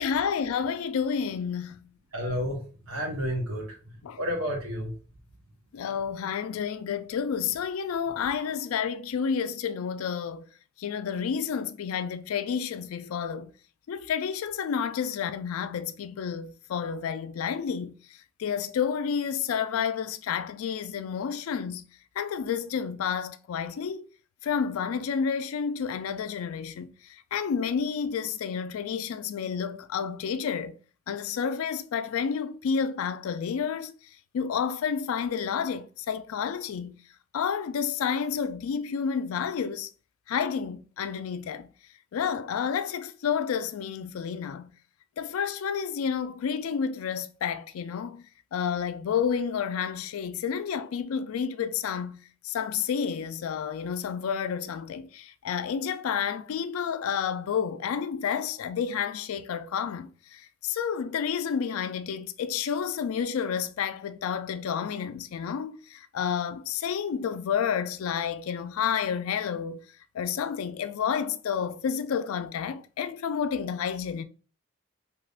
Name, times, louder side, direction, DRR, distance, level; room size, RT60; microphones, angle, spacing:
voice 1, 0.0-1.9 4.0-4.2 5.7-10.4 10.8-13.5 13.9-21.9 22.2-24.1 24.4-30.8 31.1-33.9 34.3-37.0 37.3-39.9 40.3-41.7 42.1-44.7 45.2-48.3 48.5-69.8 70.1-74.2, left 7 dB, 85° left, 0.3 m, -30 dB
voice 2, 2.1-2.6 2.9-3.8 4.2-4.9, equal, 90° right, 1.0 m, -30 dB
3.4 x 2.8 x 2.4 m
head